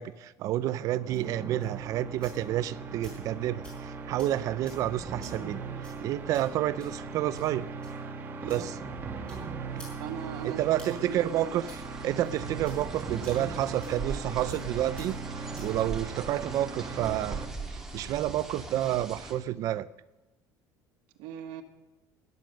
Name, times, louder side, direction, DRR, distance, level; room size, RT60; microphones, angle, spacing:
voice 1, 0.0-7.7 8.5-8.7 10.4-17.4 17.9-19.9, right 13 dB, 45° right, 16 dB, 0.6 m, -30 dB
sound 1, 1.0-16.9, left 1 dB, 10° left, 5.9 m, -56 dB
sound 2, 1.0-17.5, right 4 dB, 25° right, 1.4 m, -39 dB
voice 2, 8.4-8.7 10.0-11.6 21.2-21.6, right 9 dB, 70° right, 5 dB, 1.3 m, -40 dB
sound 3, 10.0-19.3, right 3 dB, 5° right, 2.3 m, -42 dB
16.5 x 11.0 x 6.4 m, 1.0 s
cardioid pair, 175°, 8 cm